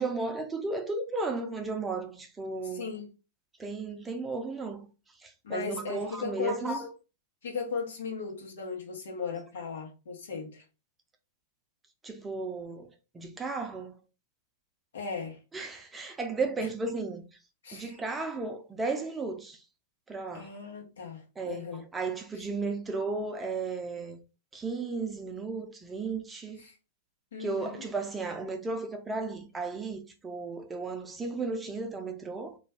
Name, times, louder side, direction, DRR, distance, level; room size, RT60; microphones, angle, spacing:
voice 1, 0.0-2.9 3.6-4.9 5.2-6.9 12.0-12.9 13.1-14.0 15.5-17.2 17.7-19.6 20.1-20.5 21.4-24.2 24.5-26.6 27.4-32.6, right 3 dB, 15° right, 0.6 m, -34 dB
voice 2, 2.6-3.1 5.4-6.8 7.4-10.6 14.9-15.4 17.6-18.0 20.3-21.8 26.6-26.7 27.3-27.8, left 5 dB, 75° left, 1.0 m, -37 dB
2.5 x 2.2 x 3.4 m
hypercardioid pair, 110°, 0 cm